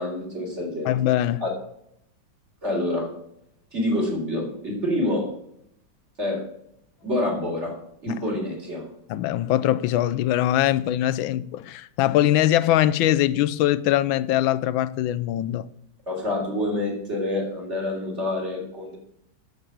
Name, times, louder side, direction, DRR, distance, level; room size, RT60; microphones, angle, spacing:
voice 1, 0.0-0.9 1.4-1.5 2.6-3.1 3.7-5.3 6.2-6.4 7.0-7.8 8.0-8.9 16.1-19.0, left 1 dB, 35° right, 4.0 m, -27 dB
voice 2, 0.8-1.4 8.1-8.2 9.1-15.7, left 13 dB, 80° left, 1.4 m, -22 dB
9.9 x 8.0 x 8.6 m
omnidirectional pair, 2.2 m